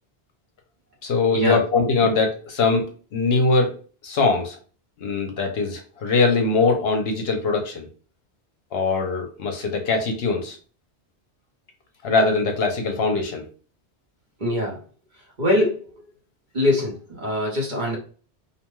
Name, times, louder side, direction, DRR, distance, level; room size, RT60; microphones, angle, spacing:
voice 1, 1.0-2.8 3.1-3.7 4.0-4.6 5.0-7.9 8.7-10.6 12.0-13.4, left 3 dB, 65° left, 4 dB, 0.8 m, -21 dB
voice 2, 14.4-14.8 15.4-15.8 16.5-18.0, left 1 dB, 45° right, -2 dB, 0.9 m, -22 dB
2.7 x 2.2 x 3.0 m, 0.39 s
omnidirectional pair, 1.2 m